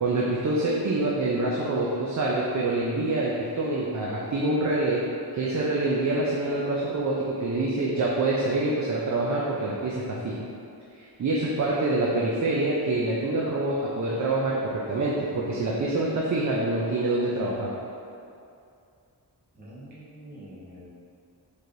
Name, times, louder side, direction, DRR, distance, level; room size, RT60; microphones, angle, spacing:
voice 1, 0.0-5.0 5.3-10.3 11.2-17.7, right 2 dB, 45° right, -5 dB, 0.5 m, -26 dB
voice 2, 19.5-20.9, equal, 20° right, -10 dB, 1.1 m, -45 dB
4.4 x 3.2 x 2.5 m, 2.5 s
wide cardioid pair, 125°, 40 cm